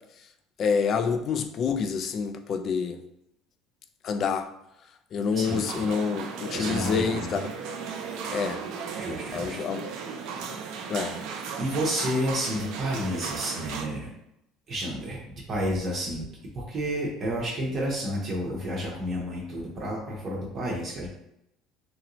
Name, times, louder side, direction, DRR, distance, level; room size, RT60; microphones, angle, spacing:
voice 1, 0.6-3.0 4.0-4.5 5.1-7.5 8.3-8.6 9.3-9.9 10.9-11.1, left 6 dB, 40° left, 7 dB, 0.3 m, -27 dB
voice 2, 5.3-5.9 6.5-7.4 9.0-9.6 11.6-14.1 14.7-15.2 15.5-16.2 16.5-21.1, equal, 35° right, -3 dB, 0.7 m, -30 dB
sound 1, 5.4-13.8, right 6 dB, 70° right, 0.4 m, -36 dB
3.0 x 2.6 x 2.9 m, 0.82 s
cardioid pair, 140°, 0 cm